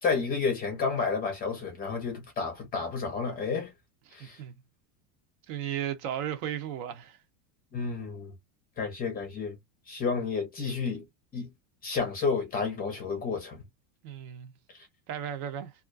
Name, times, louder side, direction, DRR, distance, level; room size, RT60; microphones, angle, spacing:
voice 1, 0.0-3.7 4.1-4.4 7.7-8.3 8.8-9.6 9.9-11.0 11.3-11.5 11.8-13.6 14.7-14.9, left 5 dB, 20° left, 0.5 m, -31 dB
voice 2, 4.2-4.5 5.5-7.2 14.0-14.5 15.1-15.7, right 10 dB, 60° right, 0.8 m, -35 dB
2.4 x 2.1 x 2.4 m
cardioid pair, 165°, 49 cm